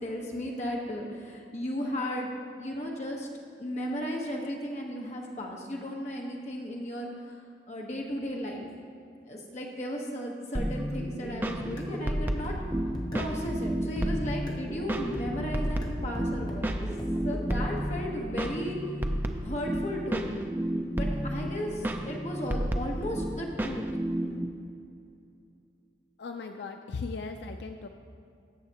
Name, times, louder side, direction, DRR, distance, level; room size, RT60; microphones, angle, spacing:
voice 1, 0.0-3.3 3.6-7.4 7.7-8.7 9.3-12.6 13.1-16.7 17.2-18.8 19.4-20.5 21.0-23.8, equal, 40° left, -1 dB, 1.1 m, -35 dB
sound 1, 10.5-24.5, right 1 dB, 10° right, 0.3 m, -32 dB
sound 2, 11.6-14.7 15.1-17.8, equal, 25° left, 0.9 m, -38 dB
voice 2, 26.2-27.9, left 4 dB, 80° left, 6 dB, 0.4 m, -37 dB
15.0 x 6.6 x 2.9 m, 2.5 s
head